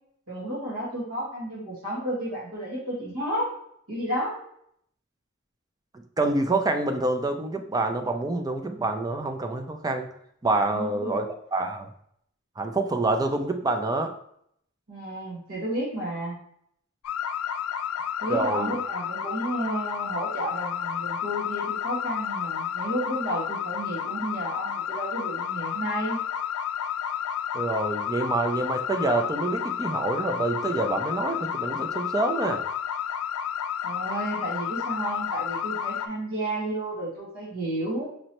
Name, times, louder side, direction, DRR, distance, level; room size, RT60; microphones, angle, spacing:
voice 1, 0.3-3.5 3.9-4.4 10.6-11.2 14.9-16.4 18.2-26.2 33.8-38.1, right 1 dB, 80° right, -8 dB, 1.7 m, -32 dB
voice 2, 5.9-10.1 10.4-11.9 12.6-14.1 18.3-18.7 27.5-32.6, right 2 dB, 20° right, 6 dB, 0.4 m, -27 dB
sound 1, 17.0-36.1, left 8 dB, 90° left, 0.4 m, -31 dB
5.3 x 3.0 x 2.9 m, 0.70 s
head